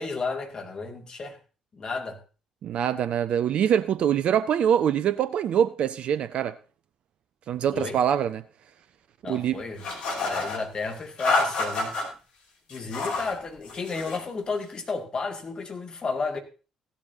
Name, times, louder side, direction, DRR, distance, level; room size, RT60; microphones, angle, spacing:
voice 1, 0.0-1.4 1.7-2.2 7.7-8.0 9.2-9.8 10.2-11.9 12.7-16.4, left 4 dB, 35° left, 2.3 m, -32 dB
voice 2, 2.6-6.5 7.5-8.4 9.3-9.6, right 9 dB, 50° right, 0.5 m, -24 dB
sound 1, 9.8-10.6 11.2-12.1 12.7-13.3 13.7-14.2, left 3 dB, 55° left, 2.9 m, -28 dB
16.0 x 11.5 x 2.8 m
figure-of-eight pair, 45°, 2 cm